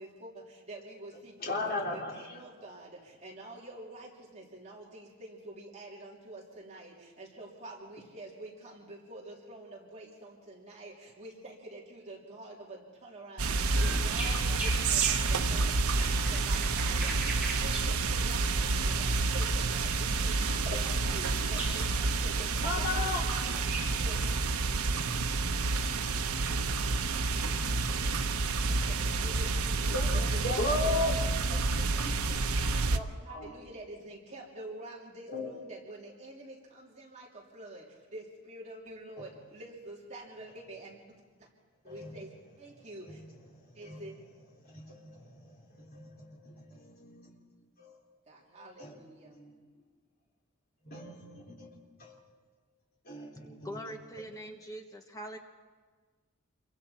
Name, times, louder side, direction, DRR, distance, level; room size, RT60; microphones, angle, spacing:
voice 1, 0.0-17.1 17.6-24.2 28.6-41.5 41.8-43.2 43.7-44.1 48.3-49.3, right 2 dB, 30° right, -3 dB, 3.3 m, -47 dB
voice 2, 1.5-2.1 13.9-14.0 20.7-20.9 22.6-23.2 27.1-27.2 28.7-28.9 29.9-30.1 30.4-31.1 31.5-31.6 31.9-32.1 32.6-33.1 33.3-33.5 35.3-35.5 41.9-42.1 43.1-43.2 43.8-44.0 44.6-47.4 47.8-48.0 48.8-48.9 49.2-49.5 50.8-51.7 52.0-52.2 53.1-53.8, left 2 dB, 45° left, -3 dB, 3.7 m, -36 dB
sound 1, 13.4-33.0, right 3 dB, 85° right, 0.9 m, -29 dB
sound 2, 13.7-21.8 23.3-23.4 23.7-23.8, right 2 dB, 5° right, 6.8 m, -41 dB
voice 3, 53.6-55.4, equal, 15° left, 4 dB, 1.3 m, -42 dB
28.5 x 23.0 x 4.4 m, 1.4 s
head